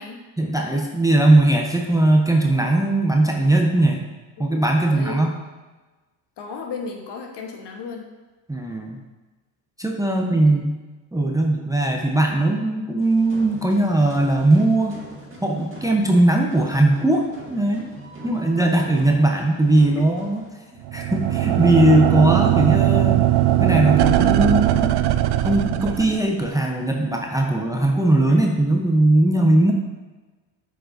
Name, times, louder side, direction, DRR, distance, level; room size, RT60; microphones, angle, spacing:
voice 1, 0.4-4.0 4.4-5.3 8.5-9.0 9.8-10.8 11.1-15.0 15.4-17.9 18.2-20.4 20.9-23.2 23.6-24.9 25.4-29.7, right 1 dB, 5° right, 1 dB, 0.7 m, -19 dB
voice 2, 4.4-5.2 6.4-8.1 10.0-10.5 20.0-20.1 28.3-28.5, left 5 dB, 55° left, 3 dB, 1.2 m, -35 dB
sound 1, 13.0-20.5, right 1 dB, 25° right, 1.9 m, -41 dB
sound 2, 20.8-26.5, right 14 dB, 55° right, 0.5 m, -19 dB
7.8 x 4.6 x 2.6 m, 1.2 s
supercardioid pair, 65°, 49 cm